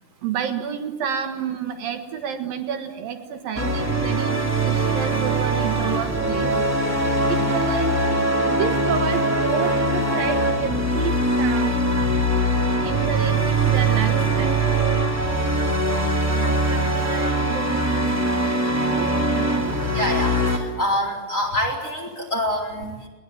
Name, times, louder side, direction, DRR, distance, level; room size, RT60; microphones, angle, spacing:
voice 1, 0.2-6.5 7.3-7.9 8.4-11.9 12.8-14.6 16.3-17.8 18.8-19.1 19.3-19.8, right 7 dB, 65° right, 7 dB, 3.0 m, -30 dB
sound 1, 3.5-20.6, right 1 dB, 5° right, 1.9 m, -22 dB
voice 2, 15.5-15.8 19.9-23.1, left 1 dB, 20° left, 0 dB, 4.4 m, -26 dB
21.5 x 20.5 x 9.3 m, 1.2 s
omnidirectional pair, 4.8 m